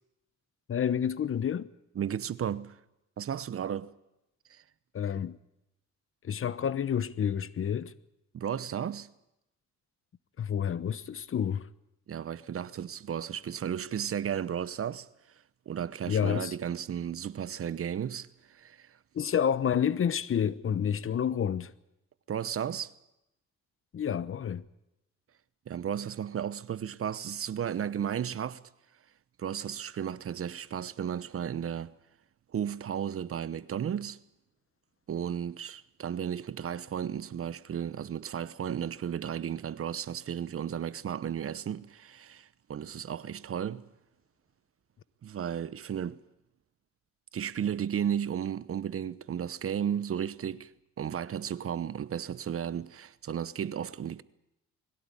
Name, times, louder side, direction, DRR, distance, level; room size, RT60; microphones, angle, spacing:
voice 1, 0.7-1.7 4.9-5.4 6.2-7.9 10.4-11.7 16.1-16.5 19.1-21.7 23.9-24.7, left 8 dB, 45° left, 0.9 m, -29 dB
voice 2, 2.0-2.8 3.2-3.9 4.5-4.6 8.3-9.1 12.1-15.1 15.7-19.0 22.3-22.9 25.7-28.6 29.4-31.9 32.5-34.2 35.1-43.9 45.2-46.2 47.3-50.7 51.0-54.2, right 9 dB, 50° right, 0.9 m, -34 dB
21.5 x 17.0 x 9.9 m
cardioid pair, 90°, 30 cm